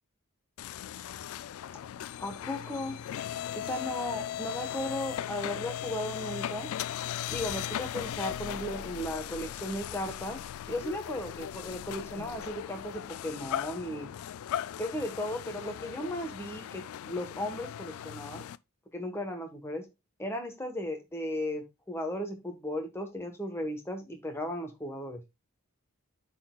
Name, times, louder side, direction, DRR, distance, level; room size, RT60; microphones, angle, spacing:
sound 1, 0.6-18.6, left 10 dB, 75° left, 0.3 m, -38 dB
voice 1, 2.2-3.0 3.5-6.7 7.3-10.4 10.7-14.1 14.8-18.5 18.9-19.8 20.2-25.2, left 1 dB, 10° left, 2 dB, 1.2 m, -36 dB
12.5 x 4.2 x 2.3 m, 0.22 s
head